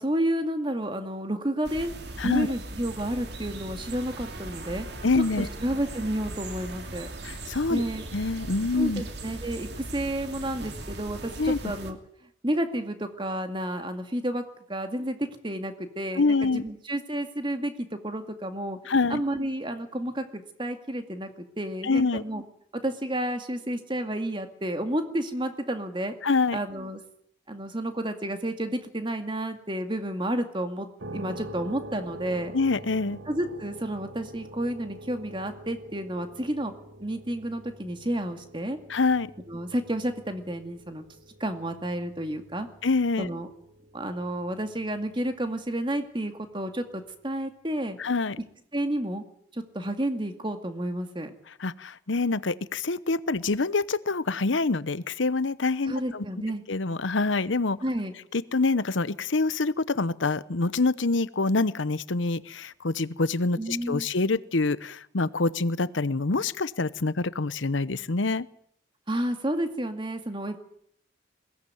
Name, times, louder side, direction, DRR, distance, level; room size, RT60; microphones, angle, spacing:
voice 1, 0.0-1.9 2.2-7.1 7.7-8.0 8.7-12.0 12.4-18.8 19.1-21.3 21.6-22.4 22.7-26.1 26.5-27.0 27.5-32.5 33.3-36.7 37.0-38.8 39.5-41.0 41.4-42.7 43.2-43.5 43.9-48.0 48.7-49.2 49.5-51.3 55.9-56.6 57.8-58.1 63.6-64.1 69.1-70.6, right 1 dB, 25° right, 7 dB, 2.1 m, -31 dB
sound 1, 1.6-11.9, right 2 dB, 55° right, 2.6 m, -39 dB
voice 2, 5.0-5.5 7.2-7.8 8.1-9.0 11.4-11.7 16.2-16.6 18.9-19.2 21.8-22.2 26.2-26.6 32.5-33.2 38.9-39.3 42.8-43.3 48.0-48.4 51.6-56.2 56.7-57.8 58.3-68.5, left 3 dB, 75° left, 17 dB, 0.9 m, -26 dB
sound 2, 31.0-45.7, right 1 dB, 70° right, 2.5 m, -45 dB
21.5 x 17.5 x 9.4 m, 0.69 s
head